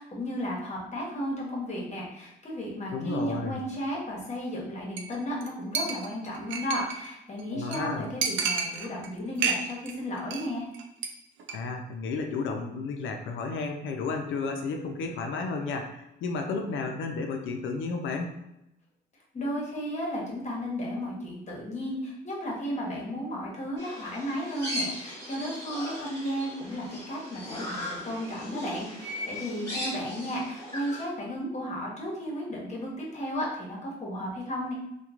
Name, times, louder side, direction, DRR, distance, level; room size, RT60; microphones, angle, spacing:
voice 1, 0.0-10.7 19.3-34.7, equal, 35° left, -3 dB, 1.0 m, -34 dB
voice 2, 2.9-3.6 7.5-8.0 11.5-18.3, left 4 dB, 75° left, 4 dB, 0.5 m, -32 dB
Chink clink, 5.0-5.2 5.4-5.5 5.8-7.1 7.4-7.5 7.7-7.8 8.2-9.1 9.4-9.9 10.2-10.5 10.7-11.1 11.4-11.5, right 5 dB, 75° right, 0.4 m, -30 dB
sound 1, 23.8-31.0, left 1 dB, 15° left, 1.2 m, -38 dB
2.9 x 2.2 x 2.4 m, 0.86 s
cardioid pair, 90°, 20 cm